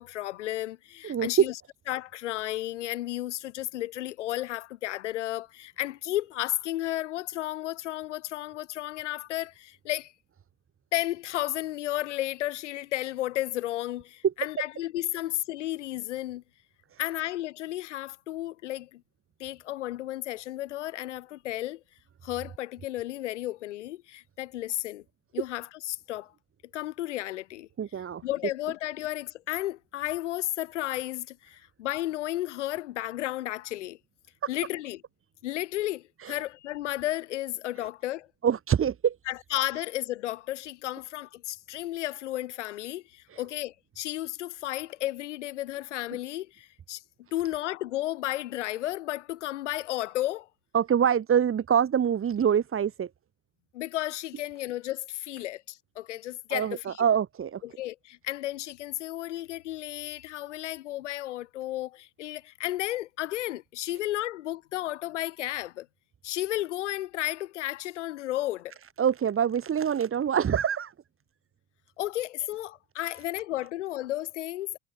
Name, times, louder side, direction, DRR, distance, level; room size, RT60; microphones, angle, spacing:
voice 1, 0.0-1.5 1.9-10.1 10.9-16.4 17.0-19.0 19.4-21.8 22.2-25.0 25.3-26.3 26.7-27.7 28.2-34.0 34.5-35.0 35.4-38.3 39.3-47.0 47.3-50.5 53.7-57.0 57.6-65.9 66.2-68.7 72.0-74.8, left 15 dB, 85° left, 3.6 m, -33 dB
voice 2, 1.0-1.5 16.9-17.0 27.8-28.2 36.2-36.4 38.4-39.2 43.3-43.4 50.7-53.1 56.5-57.6 69.0-70.9, right 8 dB, 35° right, 3.9 m, -25 dB
hypercardioid pair, 75°, 35 cm